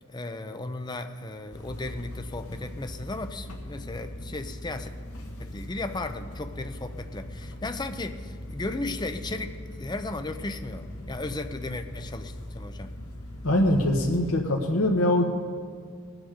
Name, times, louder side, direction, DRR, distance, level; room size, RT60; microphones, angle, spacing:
voice 1, 0.1-4.9 5.4-12.9, left 2 dB, 20° left, 8 dB, 0.7 m, -35 dB
sound 1, 1.5-14.3, left 1 dB, 85° left, 1.7 m, -40 dB
voice 2, 13.4-15.3, left 1 dB, 70° left, 0 dB, 1.2 m, -23 dB
19.5 x 8.0 x 5.1 m, 2.1 s
head